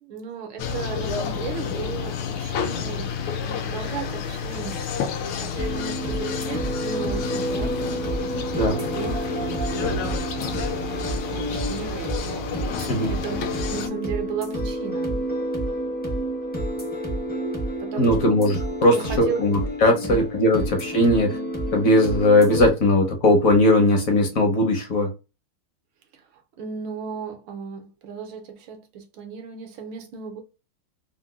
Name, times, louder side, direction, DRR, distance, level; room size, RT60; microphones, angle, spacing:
voice 1, 0.0-3.1 3.5-4.9 5.4-10.2 10.5-10.9 11.3-12.5 12.8-15.2 17.8-18.3 18.8-19.4 19.9-20.2 26.1-26.2 26.6-30.4, right 7 dB, 75° right, 1.6 m, -35 dB
sound 1, 0.6-13.9, left 5 dB, 80° left, 1.3 m, -30 dB
sound 2, 5.6-22.7, equal, 15° left, 0.4 m, -29 dB
voice 2, 18.0-21.4 21.7-25.1, left 1 dB, 60° left, 0.9 m, -19 dB
3.9 x 2.2 x 2.3 m
omnidirectional pair, 2.3 m